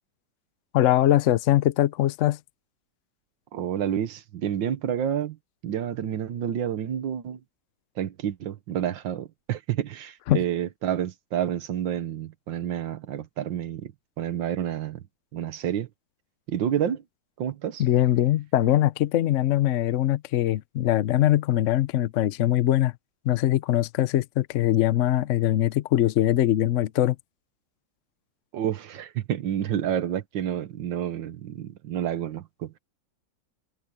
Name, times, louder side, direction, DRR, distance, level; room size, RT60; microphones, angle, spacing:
voice 1, 0.7-2.4 10.3-10.4 17.8-22.9 23.2-27.2, left 13 dB, 60° left, 0.8 m, -22 dB
voice 2, 3.5-5.4 5.6-7.4 8.0-13.9 14.2-15.0 15.3-15.9 16.5-17.0 17.4-17.8 28.5-32.8, right 10 dB, 75° right, 1.7 m, -29 dB
omnidirectional pair, 2.1 m